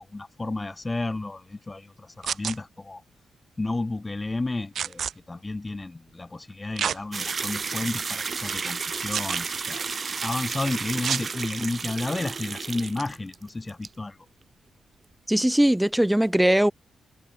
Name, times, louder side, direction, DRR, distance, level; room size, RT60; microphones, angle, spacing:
voice 1, 0.0-3.0 3.6-9.8 10.2-14.2, left 2 dB, 20° left, 5.5 m, -32 dB
sound 1, 2.2-2.6 4.8-5.1 6.8-7.0 7.6-7.7 9.1-9.5 11.0-11.3 12.8-13.0, right 8 dB, 65° right, 6.3 m, -28 dB
sound 2, 7.1-13.4 13.7-13.9, right 5 dB, 40° right, 3.4 m, -32 dB
voice 2, 15.3-16.7, right 1 dB, 5° right, 6.7 m, -20 dB
cardioid pair, 110°, 0 cm